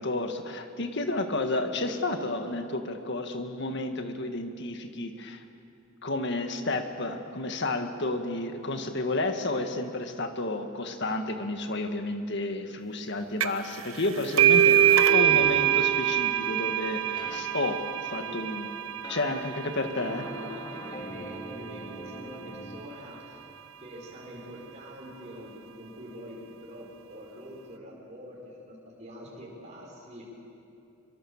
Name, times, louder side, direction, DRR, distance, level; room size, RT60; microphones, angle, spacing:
voice 1, 0.0-5.4 6.0-18.7 19.1-20.3, left 2 dB, 60° left, 6 dB, 1.8 m, -31 dB
sound 1, 13.4-13.7 14.0-21.3, right 10 dB, 85° right, 0.9 m, -24 dB
sound 2, 15.3-15.7 17.2-17.4 19.0-19.4 20.0-22.8, equal, 25° left, 2.3 m, -41 dB
voice 2, 20.0-23.4 23.8-30.3, equal, 35° right, -4 dB, 5.3 m, -45 dB
23.5 x 23.5 x 7.3 m, 2.8 s
head